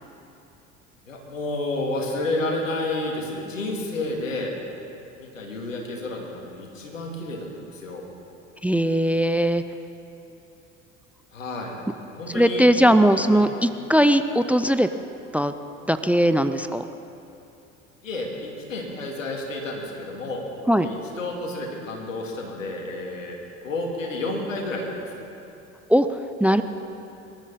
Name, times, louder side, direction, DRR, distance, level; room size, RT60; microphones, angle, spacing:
voice 1, 1.1-4.5 5.2-8.0 11.3-11.7 12.1-12.6 13.3-13.4 18.0-20.5 20.8-23.4 23.6-25.2, left 2 dB, 85° left, 0 dB, 2.5 m, -30 dB
voice 2, 8.6-9.6 12.3-14.9 15.3-15.5 15.9-16.8 20.7-20.9 25.9-26.6, equal, 5° right, 11 dB, 0.5 m, -19 dB
25.0 x 13.0 x 4.2 m, 2.9 s
hypercardioid pair, 65°, 38 cm